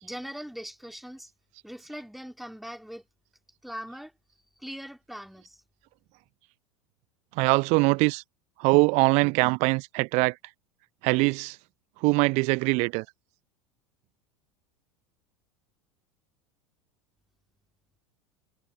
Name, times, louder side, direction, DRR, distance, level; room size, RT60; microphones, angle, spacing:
voice 1, 0.0-1.3 1.6-3.1 3.6-4.1 4.6-5.6, equal, ahead, 2.7 m, -40 dB
voice 2, 7.4-8.2 8.6-10.4 11.0-11.6 12.0-13.0, right 28 dB, 45° right, 0.9 m, -22 dB
figure-of-eight pair, 80°, 16 cm